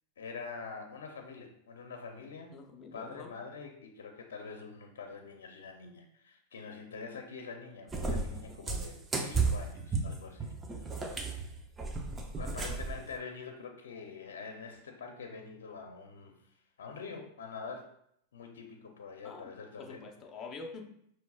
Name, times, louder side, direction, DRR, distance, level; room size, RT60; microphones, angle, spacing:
voice 1, 0.2-2.5 2.9-10.5 10.8-11.2 12.3-16.4 16.8-17.9 18.3-20.1, left 5 dB, 90° left, 4 dB, 0.6 m, -45 dB
voice 2, 2.5-3.4 12.4-12.7 19.2-19.5 19.8-20.8, left 4 dB, 30° left, 2 dB, 0.8 m, -46 dB
Cat, 7.9-13.0, right 4 dB, 15° right, 0.6 m, -33 dB
5.8 x 3.1 x 2.3 m, 0.72 s
hypercardioid pair, 125°, 0 cm